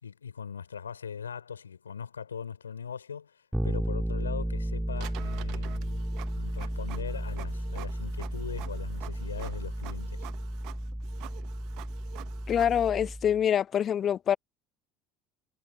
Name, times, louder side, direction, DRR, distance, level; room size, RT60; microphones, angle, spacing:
voice 1, 0.0-6.0 6.4-10.3, left 7 dB, 90° left, 4.8 m, -40 dB
Bass guitar, 3.5-13.4, right 1 dB, 5° right, 3.1 m, -33 dB
Printer, 5.0-12.9, right 21 dB, 60° right, 1.2 m, -48 dB
voice 2, 12.5-14.4, left 9 dB, 40° left, 0.4 m, -25 dB
hypercardioid pair, 70°, 0 cm